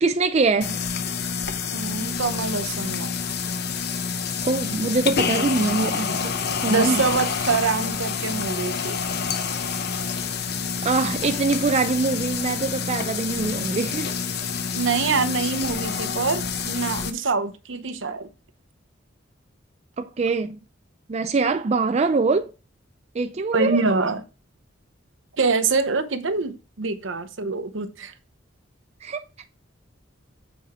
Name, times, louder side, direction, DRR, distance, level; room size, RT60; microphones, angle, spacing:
voice 1, 0.0-0.8 4.4-6.3 6.6-7.0 10.8-14.1 20.0-20.6 21.1-22.5 23.1-23.8 29.0-29.2, right 3 dB, 35° right, 0.4 m, -23 dB
sound 1, 0.6-17.1, left 6 dB, 55° left, 0.7 m, -28 dB
voice 2, 1.7-3.1 5.3-5.4 5.8-6.0 6.6-9.0 14.7-18.3 23.5-24.2 25.4-28.1, right 4 dB, 70° right, 0.8 m, -25 dB
7.8 x 5.0 x 4.2 m
head